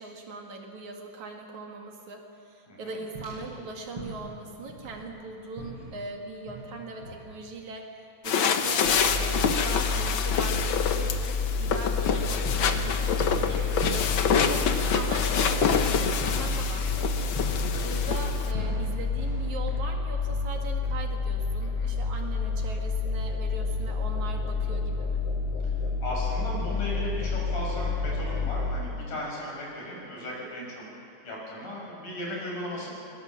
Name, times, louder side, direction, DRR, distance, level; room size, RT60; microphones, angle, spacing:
voice 1, 0.0-13.5 13.8-17.3 17.8-25.2 30.6-30.9, right 3 dB, 60° right, 2 dB, 3.2 m, -40 dB
voice 2, 2.7-3.0 13.4-14.0 17.7-17.9 21.8-21.9 26.0-30.8 31.2-32.9, left 1 dB, 70° left, -3 dB, 7.7 m, -36 dB
sound 1, 3.2-3.5 4.0-4.4 4.7-5.1 5.6-5.9 6.5-6.7 7.0-7.3 11.9-12.1 12.5-13.6 13.8-17.7 17.9-18.9 19.2-19.4 19.7-20.0, right 1 dB, 35° right, 8.6 m, -39 dB
sound 2, 8.2-18.5, left 7 dB, 90° left, 1.0 m, -27 dB
sound 3, 8.8-28.7, left 4 dB, 40° left, 4.4 m, -29 dB
23.0 x 22.5 x 7.4 m, 2.5 s
omnidirectional pair, 3.8 m